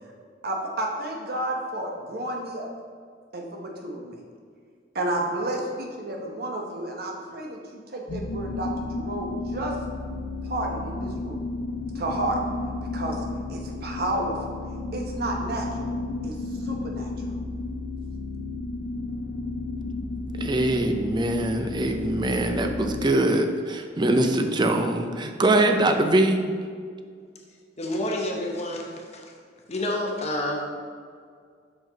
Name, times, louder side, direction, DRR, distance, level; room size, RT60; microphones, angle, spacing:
voice 1, 0.4-2.7 3.3-4.2 4.9-9.8 10.4-11.5 11.9-12.4 12.9-13.2 13.5-14.4 14.9-15.9 16.2-17.1, right 1 dB, 55° right, 0 dB, 1.0 m, -31 dB
sound 1, 8.1-23.1, left 2 dB, 70° left, 0.5 m, -33 dB
voice 2, 20.4-26.4, right 1 dB, 25° right, 5 dB, 0.5 m, -23 dB
voice 3, 27.8-29.3 29.7-30.7, left 1 dB, 35° left, 0 dB, 0.9 m, -29 dB
5.9 x 5.2 x 3.9 m, 2.1 s
head